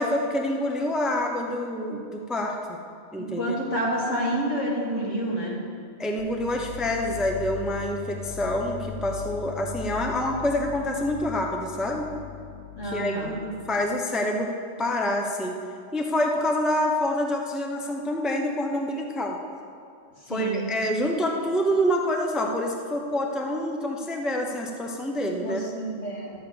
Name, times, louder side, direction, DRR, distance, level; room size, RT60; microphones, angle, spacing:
voice 1, 0.0-2.8 3.1-3.5 6.0-12.1 12.8-14.5 14.8-15.6 15.9-19.4 20.3-25.6, left 1 dB, ahead, 1 dB, 0.8 m, -27 dB
voice 2, 3.2-5.6 12.8-13.3 20.3-20.6 25.4-26.3, right 1 dB, 75° left, -5 dB, 2.9 m, -28 dB
sound 1, 6.2-13.9, left 11 dB, 50° left, 0.6 m, -39 dB
12.0 x 7.0 x 7.9 m, 2.4 s
omnidirectional pair, 1.3 m